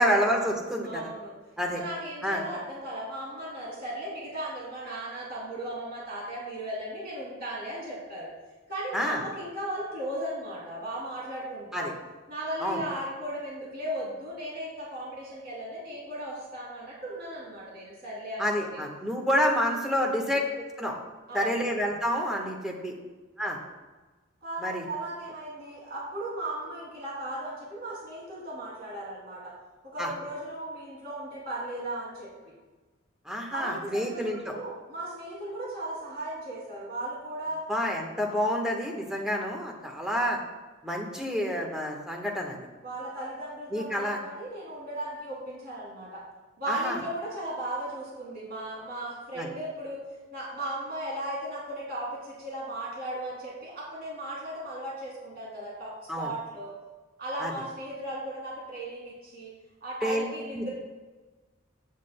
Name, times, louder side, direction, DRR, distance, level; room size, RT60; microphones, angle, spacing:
voice 1, 0.0-1.1 1.6-1.8 2.2-2.4 8.9-9.2 11.7-11.9 12.6-12.8 18.4-20.4 20.8-20.9 21.3-22.9 23.4-23.6 24.6-24.8 30.0-30.1 33.2-34.6 37.7-40.4 40.8-42.6 43.7-44.2 46.7-47.0 49.3-49.5 56.1-56.3 57.4-57.5 60.0-60.3 60.5-60.7, equal, 5° right, 0 dB, 1.2 m, -28 dB
voice 2, 0.8-1.3 1.7-8.3 8.7-11.9 12.3-18.8 19.9-20.3 21.3-21.7 22.8-22.9 24.4-29.5 29.8-32.5 33.5-37.6 42.8-46.2 46.6-50.0 50.3-56.7 57.2-59.5 59.8-60.7, right 1 dB, 50° right, -5 dB, 2.8 m, -36 dB
16.0 x 7.5 x 2.2 m, 1.3 s
head